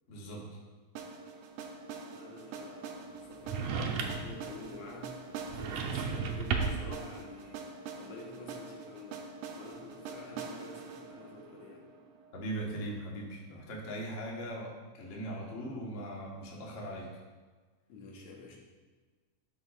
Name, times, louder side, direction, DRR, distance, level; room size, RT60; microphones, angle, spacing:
voice 1, 0.1-0.4 12.3-17.1, right 1 dB, 55° left, -3 dB, 0.8 m, -39 dB
sound 1, 1.0-12.9, right 5 dB, 90° right, 2.1 m, -45 dB
voice 2, 2.0-5.3 5.5-11.9 17.9-18.6, left 3 dB, 75° left, -1 dB, 2.6 m, -49 dB
sound 2, 3.5-4.4 5.5-6.9, right 5 dB, 75° right, 1.8 m, -33 dB
12.0 x 5.6 x 2.4 m, 1.4 s
omnidirectional pair, 3.4 m